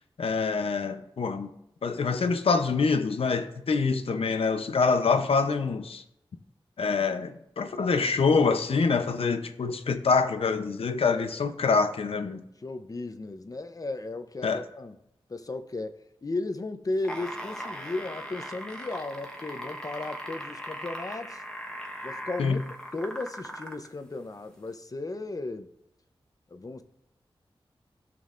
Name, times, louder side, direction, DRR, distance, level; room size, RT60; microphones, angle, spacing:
voice 1, 0.2-1.5 1.8-6.0 6.8-12.4 14.4-14.6 22.4-22.6, left 4 dB, 85° left, 0.7 m, -25 dB
voice 2, 11.1-11.5 12.6-15.0 15.3-21.4 22.0-22.6 22.9-25.7 26.5-26.8, left 2 dB, 40° left, 0.7 m, -35 dB
sound 1, 16.9-23.9 24.7-24.8, equal, 10° left, 1.2 m, -39 dB
16.0 x 6.2 x 2.5 m
wide cardioid pair, 95°, 10 cm